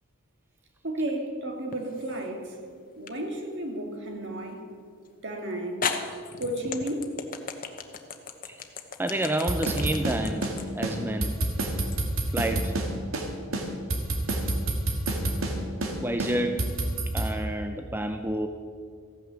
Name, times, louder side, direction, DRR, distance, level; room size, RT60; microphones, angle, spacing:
voice 1, 0.8-2.6 3.0-4.6 5.2-5.9 6.4-7.1, right 1 dB, 60° right, 3 dB, 2.1 m, -32 dB
sound 1, 1.7-2.3 3.1-3.2 5.1-5.2 5.8-12.0, left 6 dB, 40° left, 1.0 m, -35 dB
voice 2, 9.0-11.4 12.3-12.7 16.0-16.7 17.1-18.5, right 1 dB, 10° right, 6 dB, 0.5 m, -29 dB
sound 2, 9.5-10.6 10.8-11.0 11.2-12.9 13.1-13.3 13.5-15.6 15.8-17.3, right 2 dB, 75° right, 1.9 m, -28 dB
15.0 x 9.2 x 7.0 m, 2.2 s
head